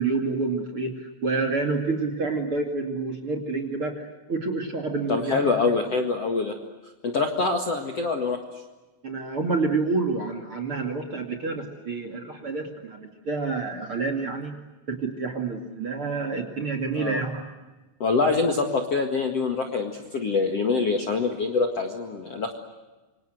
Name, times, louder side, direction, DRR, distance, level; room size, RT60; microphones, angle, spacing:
voice 1, 0.0-5.6 9.0-14.5 14.9-17.5, right 3 dB, 35° right, 6 dB, 2.6 m, -28 dB
voice 2, 5.1-6.6 7.0-8.4 16.9-17.2 18.0-22.6, left 4 dB, 45° left, 3 dB, 2.1 m, -25 dB
27.5 x 25.5 x 8.0 m, 1.2 s
omnidirectional pair, 5.2 m